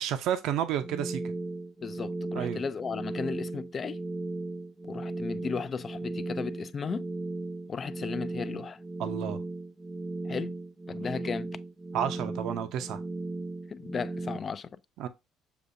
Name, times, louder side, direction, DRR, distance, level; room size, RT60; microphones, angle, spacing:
voice 1, 0.0-1.3 2.3-2.6 9.0-9.4 11.9-13.0 15.0-15.1, right 10 dB, 70° right, 0.6 m, -31 dB
sound 1, 0.8-14.4, right 2 dB, 25° right, 0.7 m, -36 dB
voice 2, 1.8-4.0 4.8-7.0 7.7-8.8 10.2-10.5 10.9-11.5 13.7-14.8, left 6 dB, 35° left, 0.3 m, -35 dB
6.8 x 2.6 x 2.5 m
cardioid pair, 115°, 0 cm